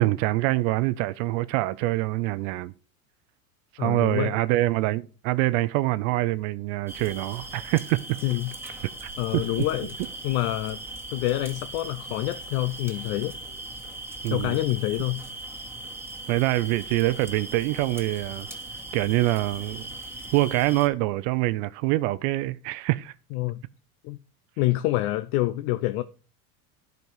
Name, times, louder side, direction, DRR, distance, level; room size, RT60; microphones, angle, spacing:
voice 1, 0.0-2.7 3.7-8.0 9.0-9.4 14.2-14.6 16.3-18.5 18.9-19.9 20.3-23.1, right 18 dB, 65° right, 0.6 m, -25 dB
voice 2, 3.8-4.4 8.2-8.5 9.2-10.0 10.2-10.8 11.1-13.4 14.3-15.2 23.3-23.6 24.0-24.2 24.6-26.0, left 16 dB, 70° left, 0.7 m, -27 dB
sound 1, 6.9-20.9, right 2 dB, 5° right, 2.1 m, -39 dB
10.5 x 5.3 x 4.7 m
supercardioid pair, 120°, 43 cm